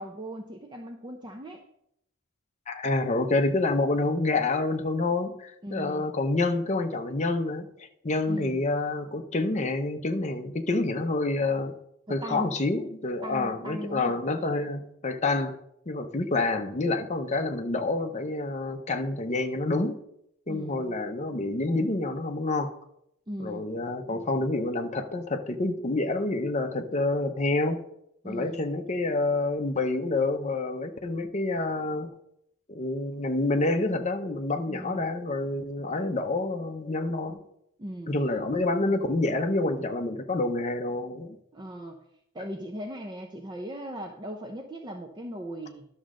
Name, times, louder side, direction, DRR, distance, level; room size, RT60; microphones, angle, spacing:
voice 1, 0.0-1.6 5.6-6.1 8.3-8.6 12.1-12.5 13.2-14.2 20.5-21.0 23.3-23.7 28.2-28.6 34.7-35.1 37.8-38.1 41.5-42.0 42.3-45.8, equal, 20° right, 3 dB, 0.6 m, -38 dB
voice 2, 2.7-11.8 12.1-15.5 15.9-20.0 20.5-22.7 23.4-27.8 28.2-32.1 32.7-37.4 38.1-41.4, left 2 dB, 30° left, 6 dB, 0.7 m, -28 dB
11.0 x 6.3 x 3.7 m, 0.77 s
head